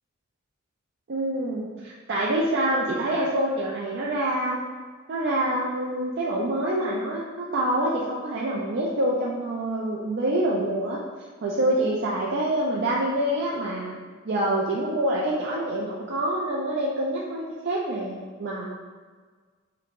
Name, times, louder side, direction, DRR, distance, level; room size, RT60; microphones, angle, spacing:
voice 1, 1.1-4.6 5.1-11.0 11.4-14.0 14.2-18.7, right 1 dB, 60° right, -5 dB, 0.5 m, -26 dB
3.7 x 2.8 x 3.6 m, 1.5 s
head